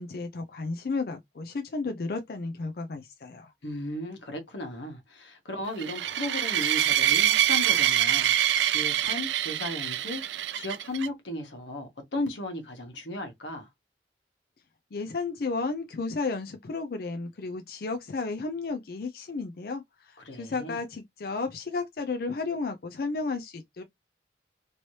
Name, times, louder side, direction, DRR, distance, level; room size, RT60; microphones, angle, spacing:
voice 1, 0.0-3.5 14.9-23.8, left 3 dB, 55° left, 0.4 m, -33 dB
voice 2, 3.6-13.7 20.2-20.8, left 1 dB, 90° left, 1.2 m, -36 dB
sound 1, 5.8-11.1, right 11 dB, 80° right, 0.3 m, -25 dB
3.1 x 3.0 x 2.7 m
head